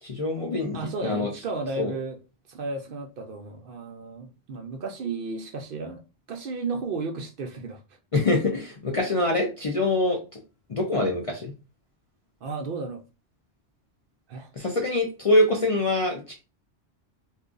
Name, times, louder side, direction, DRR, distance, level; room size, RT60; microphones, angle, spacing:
voice 1, 0.0-1.3 1.8-1.9 8.1-10.2 10.7-11.5 14.6-16.3, left 2 dB, 45° left, 0.4 m, -24 dB
voice 2, 0.7-2.2 2.5-6.0 6.3-7.8 12.4-13.0 14.3-14.5, right 3 dB, 60° right, 0.7 m, -33 dB
2.5 x 2.3 x 3.7 m
omnidirectional pair, 1.1 m